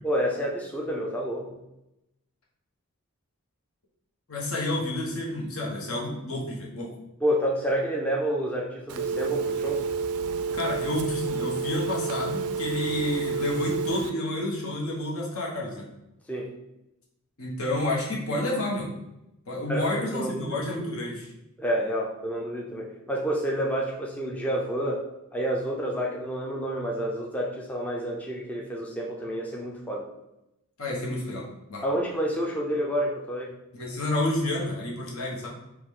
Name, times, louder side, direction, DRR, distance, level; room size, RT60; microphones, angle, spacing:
voice 1, 0.0-1.6 7.2-9.9 16.3-16.5 19.7-20.8 21.6-25.0 25.3-30.1 31.8-33.5, equal, 5° left, -2 dB, 0.4 m, -29 dB
voice 2, 4.3-6.9 10.5-15.9 17.4-18.9 19.5-21.3 30.8-31.8 33.7-35.5, left 1 dB, 70° left, -3 dB, 1.2 m, -30 dB
Telephone, 8.9-14.1, right 5 dB, 75° right, 0.3 m, -30 dB
4.7 x 2.4 x 3.6 m, 0.89 s
head